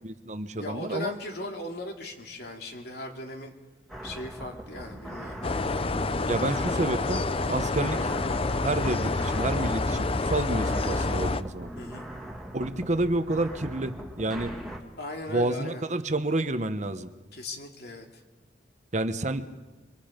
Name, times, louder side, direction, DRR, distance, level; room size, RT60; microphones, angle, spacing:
voice 1, 0.0-1.1 6.3-8.1 8.6-11.7 12.5-14.5 15.3-17.1 18.9-19.5, right 2 dB, 40° right, 9 dB, 1.1 m, -29 dB
voice 2, 0.6-3.5 4.0-5.5 11.8-12.1 15.0-15.8 17.3-18.2, left 1 dB, 60° left, 2 dB, 2.8 m, -38 dB
sound 1, 3.9-14.8, right 1 dB, ahead, 2.3 m, -40 dB
sound 2, 5.4-11.4, left 3 dB, 30° left, 0.6 m, -28 dB
27.0 x 24.5 x 5.2 m, 1.2 s
head